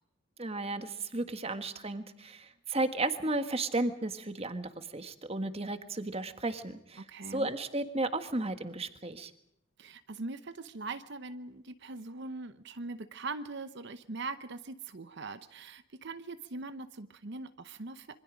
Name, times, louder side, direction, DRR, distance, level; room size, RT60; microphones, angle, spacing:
voice 1, 0.4-7.0 7.3-9.3, right 2 dB, 30° right, 8 dB, 1.6 m, -34 dB
voice 2, 7.0-7.5 9.8-18.2, right 3 dB, 55° right, 11 dB, 0.8 m, -41 dB
26.5 x 24.0 x 5.1 m, 0.77 s
head